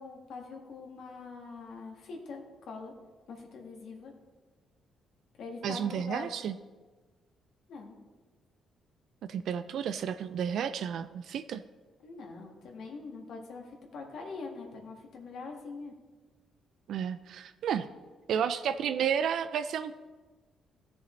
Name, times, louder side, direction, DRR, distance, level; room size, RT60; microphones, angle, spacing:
voice 1, 0.0-2.4 2.7-2.9 3.3-4.1 5.4-6.3 7.7-8.0 12.0-15.9, left 4 dB, 70° left, 1 dB, 1.7 m, -43 dB
voice 2, 5.6-6.6 9.3-11.6 16.9-17.9 18.3-19.9, right 8 dB, 70° right, 11 dB, 0.3 m, -31 dB
14.0 x 6.9 x 3.2 m, 1.3 s
cardioid pair, 90°, 0 cm